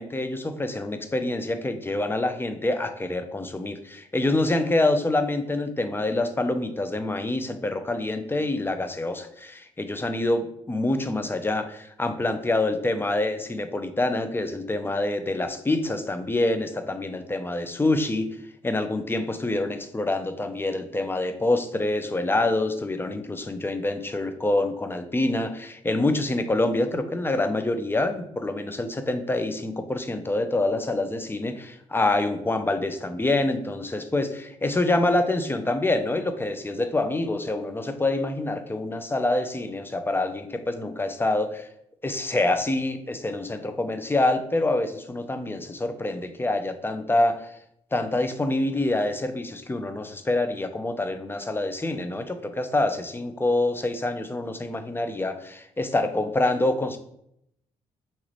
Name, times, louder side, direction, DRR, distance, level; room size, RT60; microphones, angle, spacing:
voice 1, 0.0-18.3 18.6-41.7 42.0-47.5 47.9-57.0, left 2 dB, 15° left, 8 dB, 0.6 m, -26 dB
4.1 x 3.6 x 3.2 m, 0.73 s
figure-of-eight pair, 40°, 16 cm